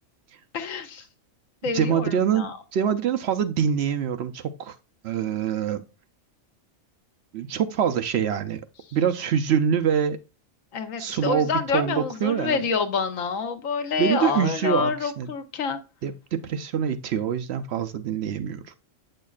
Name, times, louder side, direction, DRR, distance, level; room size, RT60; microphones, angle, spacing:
voice 1, 0.5-1.0 1.6-2.6 10.7-15.8, left 5 dB, 85° left, 1.2 m, -27 dB
voice 2, 1.7-4.7 5.0-5.8 7.3-8.6 8.9-10.2 11.0-12.6 14.0-15.3 16.0-18.6, right 8 dB, 65° right, 0.8 m, -25 dB
8.3 x 6.5 x 2.3 m
omnidirectional pair, 1.3 m